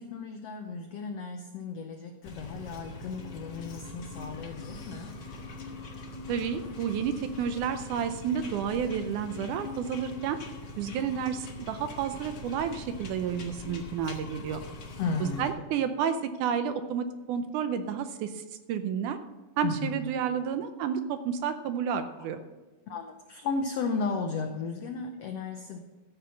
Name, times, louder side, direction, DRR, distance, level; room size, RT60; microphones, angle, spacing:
voice 1, 0.0-5.2 15.0-15.5 19.6-20.0 22.2-22.3 22.9-25.8, left 4 dB, 90° left, 5 dB, 1.4 m, -34 dB
sound 1, 2.2-15.5, left 3 dB, 50° left, 1.4 m, -42 dB
voice 2, 6.3-10.4 10.8-14.6 15.2-19.2 19.6-22.4, right 7 dB, 75° right, 9 dB, 2.0 m, -31 dB
14.0 x 7.4 x 5.7 m, 1.2 s
omnidirectional pair, 4.0 m